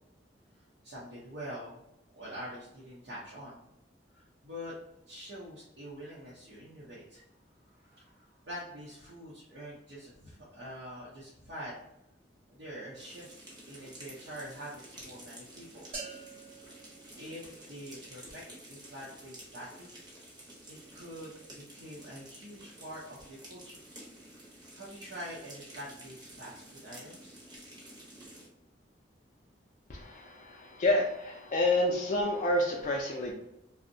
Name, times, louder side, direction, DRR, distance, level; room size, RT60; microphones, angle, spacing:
voice 1, 0.6-1.8 2.1-3.6 4.1-4.7 5.1-7.2 7.7-11.8 12.5-13.3 13.6-16.0 17.1-18.4 18.7-19.9 20.7-23.8 24.7-27.4, equal, 75° right, -8 dB, 0.6 m, -45 dB
sound 1, 13.0-28.5, right 1 dB, 25° right, 0.6 m, -51 dB
sound 2, 15.9-17.9, right 3 dB, 50° right, 1.0 m, -46 dB
voice 2, 29.9-33.3, left 1 dB, 45° left, -1 dB, 0.3 m, -29 dB
2.6 x 2.0 x 2.6 m, 0.84 s
head